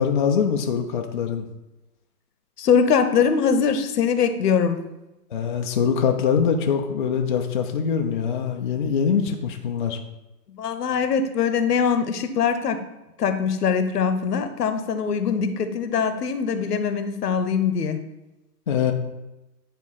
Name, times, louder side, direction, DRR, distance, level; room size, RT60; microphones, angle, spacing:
voice 1, 0.0-1.5 5.3-10.0 18.7-18.9, left 7 dB, 35° left, 3 dB, 0.4 m, -23 dB
voice 2, 2.6-4.8 10.5-12.8 13.2-18.0, left 6 dB, 70° left, 9 dB, 0.9 m, -22 dB
9.4 x 3.6 x 4.0 m, 0.98 s
figure-of-eight pair, 120°, 50 cm